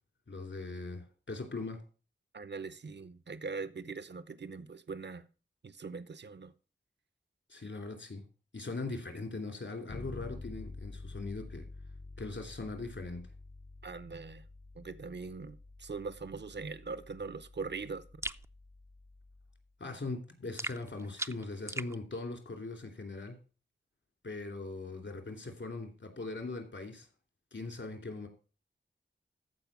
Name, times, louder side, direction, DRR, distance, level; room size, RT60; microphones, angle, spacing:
voice 1, 0.3-1.8 7.5-8.2 8.5-11.6 12.2-13.2 19.8-23.4 24.2-27.1 27.5-28.3, left 3 dB, 70° left, 2.8 m, -40 dB
voice 2, 2.3-5.2 5.6-6.5 13.8-14.4 14.7-18.0, right 4 dB, 60° right, 0.8 m, -41 dB
Bass guitar, 9.9-19.6, left 3 dB, 35° left, 0.7 m, -49 dB
sound 1, 18.2-18.5 20.6-21.9, right 2 dB, 15° right, 0.5 m, -39 dB
14.0 x 4.8 x 6.0 m
wide cardioid pair, 65°, 20 cm